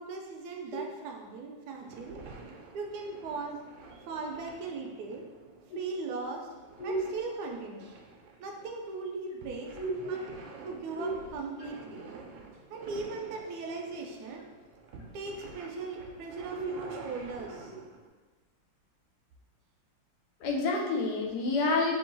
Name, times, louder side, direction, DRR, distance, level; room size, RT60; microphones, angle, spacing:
voice 1, 0.0-2.2 2.7-3.6 3.9-5.3 5.7-6.5 6.8-8.0 8.4-9.8 10.1-10.3 10.6-12.0 12.7-14.4 15.1-17.7, right 4 dB, 70° right, 1 dB, 1.1 m, -38 dB
sound 1, 1.7-18.1, right 4 dB, 85° right, 1.3 m, -49 dB
voice 2, 9.8-10.1 10.9-11.1 16.6-16.7 20.4-21.9, left 2 dB, 70° left, -1 dB, 1.1 m, -29 dB
3.8 x 2.7 x 3.9 m, 1.3 s
omnidirectional pair, 2.0 m